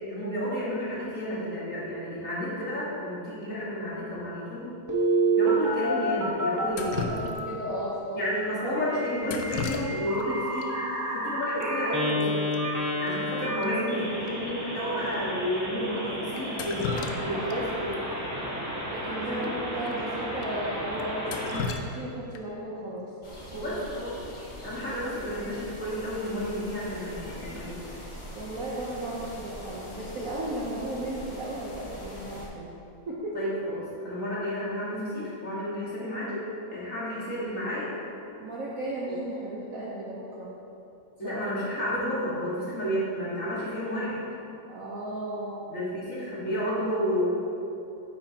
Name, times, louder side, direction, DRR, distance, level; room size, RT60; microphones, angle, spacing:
voice 1, 0.0-4.7 5.4-7.2 8.1-10.8 11.1-12.4 13.0-16.9 17.2-18.0 19.3-19.5 23.5-24.2 24.6-28.0 33.3-38.0 41.2-44.2 45.7-47.3, equal, 40° left, -8 dB, 2.1 m, -31 dB
Telephone, 4.9-7.4 8.8-21.6, right 1 dB, 20° right, 0.4 m, -30 dB
Drip, 6.7-7.7 9.2-10.3 10.6-10.7 11.6-11.7 12.0-12.2 12.5-12.6 13.1-13.2 13.6-13.7 14.3-14.4 15.1-15.2 16.4-17.6 17.9-18.0 19.4-19.5 19.9-20.0 20.4-20.5 21.0-22.6 24.6-24.9 25.3-25.7, left 4 dB, 80° left, 0.8 m, -35 dB
voice 2, 6.7-8.2 8.5-8.9 16.3-18.0 18.9-21.3 21.6-23.1 28.3-32.7 33.1-33.4 38.4-40.5 41.2-41.5 44.7-45.7, right 1 dB, 55° right, -5 dB, 1.1 m, -35 dB
sound 1, 23.2-32.5, equal, 20° left, 0.8 m, -42 dB
9.4 x 7.6 x 2.9 m, 2.8 s
omnidirectional pair, 2.2 m